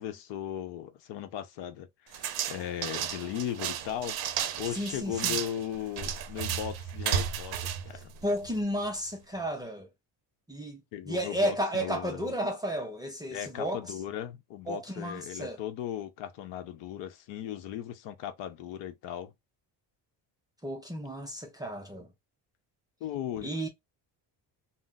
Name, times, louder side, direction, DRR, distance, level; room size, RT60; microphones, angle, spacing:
voice 1, 0.0-4.2 4.5-8.1 10.9-12.3 13.3-19.3 23.0-23.7, left 10 dB, 80° left, 0.7 m, -37 dB
sound 1, 2.1-8.7, right 9 dB, 60° right, 0.6 m, -33 dB
voice 2, 4.7-5.4 7.9-9.9 10.5-13.8 14.7-15.6 20.6-22.1 23.4-23.7, equal, 10° right, 0.3 m, -33 dB
2.3 x 2.0 x 3.8 m
cardioid pair, 160°, 43 cm